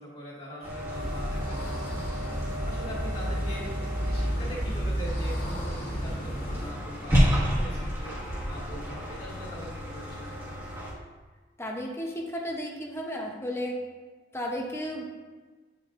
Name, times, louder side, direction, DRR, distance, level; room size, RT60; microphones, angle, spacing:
voice 1, 0.0-8.1 8.5-10.6, equal, 35° left, -5 dB, 2.1 m, -42 dB
sound 1, 0.6-10.9, equal, 15° right, 1.3 m, -31 dB
sound 2, 0.9-6.7, equal, 60° left, 1.7 m, -32 dB
voice 2, 11.6-13.8 14.3-15.1, equal, 15° left, 0 dB, 0.7 m, -33 dB
8.6 x 5.3 x 2.5 m, 1.3 s
head